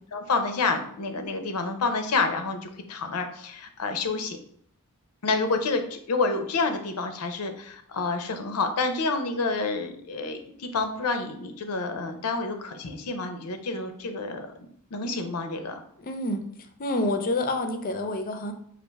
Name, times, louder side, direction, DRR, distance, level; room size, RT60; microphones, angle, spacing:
voice 1, 0.1-4.4 5.2-15.8, left 3 dB, 85° left, 7 dB, 0.6 m, -29 dB
voice 2, 16.0-16.4 16.8-18.5, left 1 dB, 40° left, 7 dB, 0.5 m, -28 dB
5.3 x 2.5 x 3.3 m, 0.66 s
head